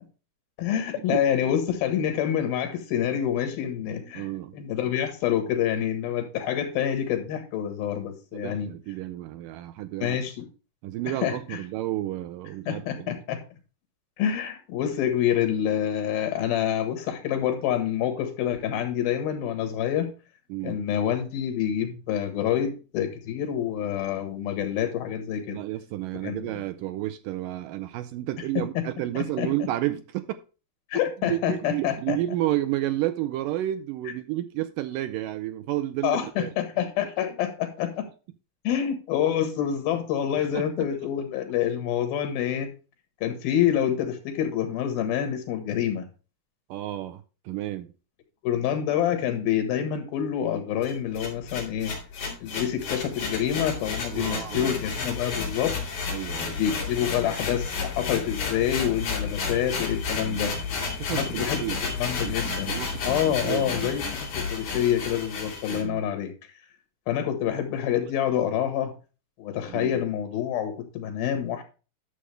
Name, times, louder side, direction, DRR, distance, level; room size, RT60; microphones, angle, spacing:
voice 1, 0.6-4.3 4.5-8.7 10.0-10.5 11.2-11.6 12.7-13.4 14.2-20.1 20.6-25.6 26.2-26.5 28.5-28.8 29.1-29.5 30.9-32.2 36.0-38.1 38.6-42.7 43.2-46.1 48.4-51.9 52.4-55.7 56.4-60.5 61.1-62.7 63.0-66.3 67.1-68.9 69.4-71.6, left 10 dB, 80° left, 3.4 m, -27 dB
voice 2, 4.1-4.5 8.3-10.2 10.8-13.2 20.5-20.8 25.5-30.4 31.2-36.5 40.4-40.7 46.7-47.9 54.1-54.8 56.1-56.6 60.2-60.7 61.0-61.8 62.2-64.0 65.7-66.1 69.7-70.0, right 14 dB, 80° right, 2.1 m, -31 dB
sound 1, 50.8-65.8, left 5 dB, 55° left, 4.0 m, -32 dB
11.5 x 6.9 x 3.3 m
omnidirectional pair, 4.2 m